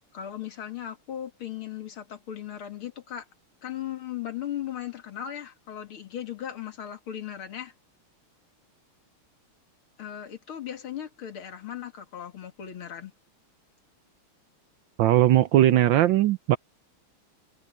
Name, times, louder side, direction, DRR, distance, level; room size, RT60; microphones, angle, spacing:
voice 1, 0.1-3.3 3.6-7.7 10.0-13.1, left 10 dB, 70° left, 3.0 m, -37 dB
voice 2, 15.0-16.6, right 13 dB, 70° right, 1.2 m, -19 dB
omnidirectional pair, 2.4 m